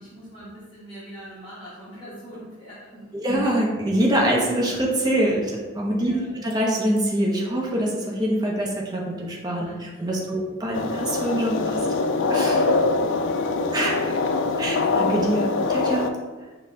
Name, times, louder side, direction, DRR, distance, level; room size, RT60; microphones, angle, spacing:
voice 1, 0.0-3.2 6.0-6.4 9.6-10.5 12.6-12.9 13.1-14.0 14.4-14.8, equal, 25° left, -12 dB, 1.1 m, -43 dB
voice 2, 3.1-11.8 12.3-12.6 13.7-13.9 14.6-16.1, right 1 dB, 20° right, -3 dB, 0.7 m, -24 dB
sound 1, 10.7-16.1, left 3 dB, 65° left, 0.3 m, -23 dB
5.4 x 2.3 x 3.8 m, 1.3 s
head